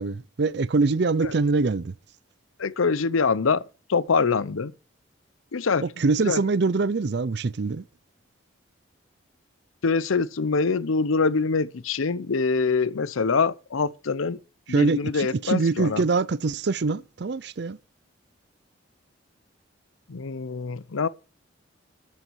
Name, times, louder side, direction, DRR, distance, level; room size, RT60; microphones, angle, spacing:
voice 1, 0.0-1.9 5.8-7.8 14.7-17.8, right 4 dB, 55° right, 0.5 m, -24 dB
voice 2, 2.6-3.6 3.9-4.7 5.5-5.8 6.3-6.4 9.8-14.4 14.7-16.0 20.1-21.1, left 4 dB, 85° left, 0.7 m, -24 dB
13.0 x 8.2 x 4.7 m
head